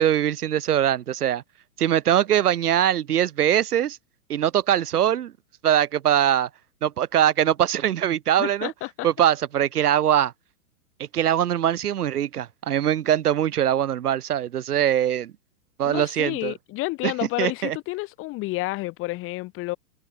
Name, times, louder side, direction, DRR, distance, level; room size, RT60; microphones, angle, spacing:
voice 1, 0.0-1.4 1.8-4.0 4.3-5.3 5.6-6.5 6.8-8.7 9.0-10.3 11.1-15.3 15.8-16.5 17.0-17.1 17.4-17.8, right 10 dB, 75° right, 2.6 m, -22 dB
voice 2, 8.4-9.1 15.8-19.8, left 20 dB, 25° left, 5.6 m, -30 dB
hypercardioid pair, 155°, 46 cm